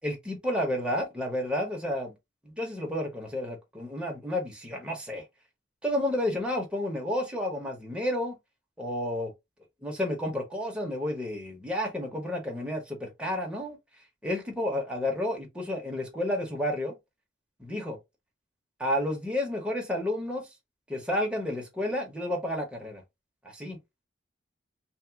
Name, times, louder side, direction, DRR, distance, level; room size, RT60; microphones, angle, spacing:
voice 1, 0.0-2.1 2.4-5.2 5.8-8.4 8.8-9.3 9.8-13.8 14.2-17.0 17.6-18.0 18.8-20.5 20.9-23.0 23.4-23.8, left 1 dB, 5° right, 0.7 m, -31 dB
2.9 x 2.0 x 3.3 m
head